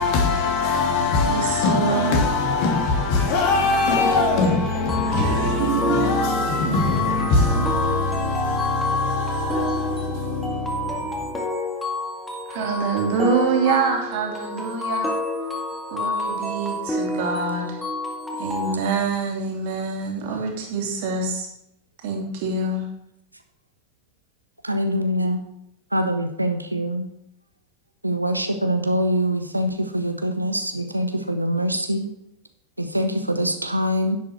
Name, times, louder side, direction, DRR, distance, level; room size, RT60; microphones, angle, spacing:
voice 1, 0.0-11.4, left 3 dB, 45° left, 2.8 m, -22 dB
voice 2, 1.3-2.2 5.6-6.2 6.6-7.7 12.5-15.1 15.9-17.8 18.4-21.5 22.0-22.9, right 4 dB, 50° right, 2.6 m, -25 dB
sound 1, 4.0-18.7, left 2 dB, 10° left, 2.0 m, -28 dB
voice 3, 24.6-25.4 25.9-27.1 28.0-32.1 32.8-34.2, equal, 85° right, 0.9 m, -24 dB
10.5 x 7.6 x 4.5 m
figure-of-eight pair, 90°, 0 cm